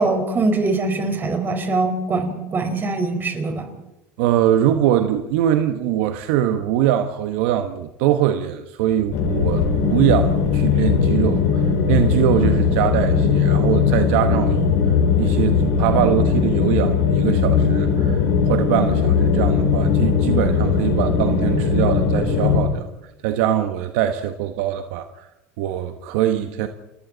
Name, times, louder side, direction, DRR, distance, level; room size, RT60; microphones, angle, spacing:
voice 1, 0.0-3.7, right 3 dB, 30° right, 6 dB, 4.5 m, -22 dB
voice 2, 4.2-22.9 23.2-25.3 25.6-26.7, right 10 dB, 75° right, 8 dB, 1.2 m, -22 dB
sound 1, 9.1-22.6, left 6 dB, 75° left, 6.0 m, -19 dB
30.0 x 21.5 x 4.0 m, 0.95 s
supercardioid pair, 100°, 7 cm